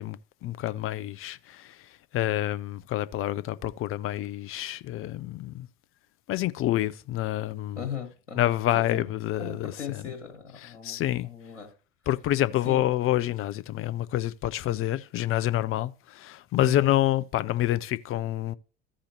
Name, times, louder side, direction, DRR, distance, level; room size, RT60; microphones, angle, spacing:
voice 1, 0.0-1.8 2.1-5.7 6.3-7.9 8.4-10.0 10.6-11.3 12.1-18.5, left 14 dB, 35° left, 0.6 m, -28 dB
voice 2, 7.8-11.7 12.6-12.8 16.6-17.0, left 7 dB, 85° left, 1.6 m, -38 dB
15.0 x 5.0 x 2.9 m
figure-of-eight pair, 70°, 35 cm